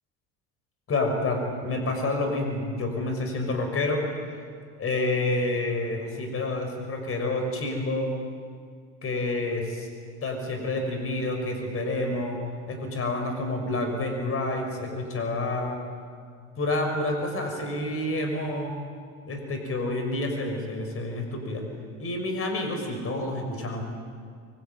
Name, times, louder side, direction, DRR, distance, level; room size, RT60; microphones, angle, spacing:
voice 1, 0.9-4.1 4.8-8.1 9.0-9.9 10.2-12.4 12.7-15.8 16.6-18.7 19.2-21.7 22.0-23.8, left 2 dB, 40° left, 4 dB, 6.2 m, -28 dB
24.5 x 24.0 x 9.2 m, 2.1 s
supercardioid pair, 90°, 34 cm